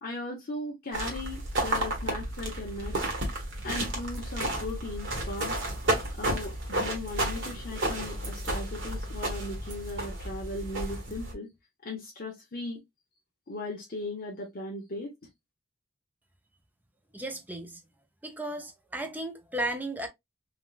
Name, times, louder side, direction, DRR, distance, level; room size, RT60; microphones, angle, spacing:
voice 1, 0.0-3.0 3.6-5.6 6.1-11.5 11.8-12.8 13.5-15.1, left 2 dB, 45° left, 0.7 m, -37 dB
sound 1, 0.9-11.3, right 1 dB, 65° right, 1.2 m, -32 dB
voice 2, 17.1-17.8 18.2-20.1, right 1 dB, 10° right, 0.4 m, -35 dB
3.5 x 2.3 x 2.4 m
head